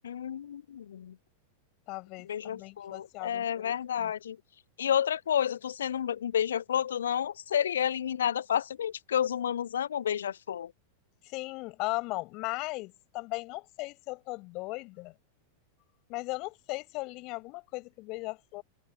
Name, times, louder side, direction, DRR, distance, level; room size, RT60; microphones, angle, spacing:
voice 1, 0.0-1.2 2.2-4.4 4.8-10.7, left 9 dB, 65° left, 1.1 m, -30 dB
voice 2, 1.9-4.1 11.2-15.1 16.1-18.6, left 24 dB, 40° left, 7.5 m, -37 dB
open air
figure-of-eight pair, 90°, 0 cm